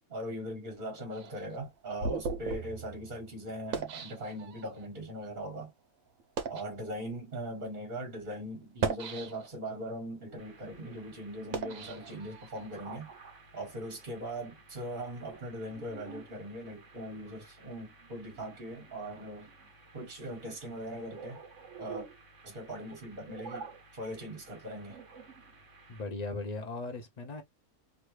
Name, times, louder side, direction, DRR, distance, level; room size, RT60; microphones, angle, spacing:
voice 1, 0.1-5.7 6.5-13.1 13.5-19.5 19.9-21.4 21.8-22.1 22.4-25.0, equal, 35° right, 1.6 m, -40 dB
sound 1, 1.1-4.9 5.5-5.7 6.2-6.7 7.5-7.7 8.6-9.7 10.2-12.7, right 5 dB, 80° right, 1.2 m, -38 dB
sound 2, 10.4-26.0, right 5 dB, 60° right, 1.3 m, -51 dB
voice 2, 25.9-27.4, left 3 dB, 60° left, 0.4 m, -38 dB
3.1 x 2.4 x 3.1 m
omnidirectional pair, 1.4 m